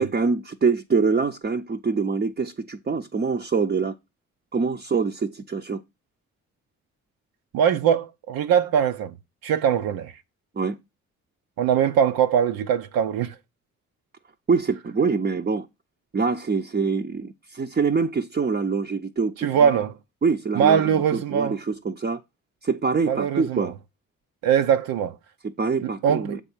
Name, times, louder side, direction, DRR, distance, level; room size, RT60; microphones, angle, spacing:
voice 1, 0.0-3.9 4.5-5.8 10.6-10.8 14.5-15.7 16.1-19.8 20.2-22.2 22.6-23.7 25.4-26.4, right 5 dB, 25° right, 0.7 m, -25 dB
voice 2, 7.5-9.2 9.4-10.1 11.6-13.3 19.4-19.9 20.5-21.6 23.1-23.7 24.4-25.2 25.8-26.4, right 8 dB, 75° right, 0.7 m, -22 dB
7.4 x 3.6 x 5.7 m
hypercardioid pair, 45°, 36 cm